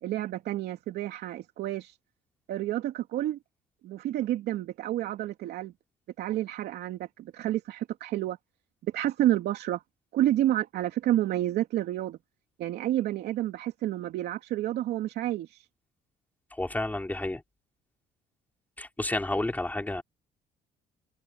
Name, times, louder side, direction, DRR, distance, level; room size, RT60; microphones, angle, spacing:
voice 1, 0.0-1.9 2.5-3.4 3.8-5.7 6.2-8.4 8.8-9.8 10.1-12.2 12.6-15.6, right 13 dB, 75° right, 2.9 m, -29 dB
voice 2, 16.5-17.4 18.8-20.0, left 2 dB, 10° left, 4.1 m, -30 dB
cardioid pair, 110°, 17 cm